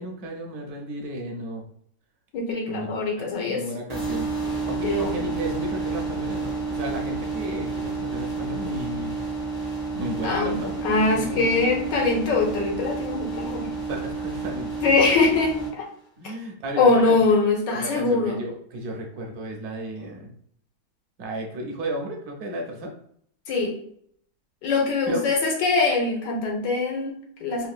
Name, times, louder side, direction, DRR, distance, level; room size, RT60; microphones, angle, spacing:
voice 1, 0.0-1.6 2.7-2.9 3.2-4.3 4.7-9.2 9.9-11.5 13.9-15.1 16.2-17.2 17.7-20.3 21.2-22.9 25.1-25.2, right 1 dB, 70° right, 1 dB, 1.0 m, -33 dB
voice 2, 2.3-3.6 4.8-5.2 10.2-13.7 14.8-15.8 16.8-18.4 23.5-23.8 24.6-27.7, left 3 dB, 90° left, 0 dB, 1.5 m, -23 dB
sound 1, 3.9-15.7, right 4 dB, 30° left, 0.4 m, -30 dB
3.5 x 2.2 x 2.3 m, 0.65 s
omnidirectional pair, 1.8 m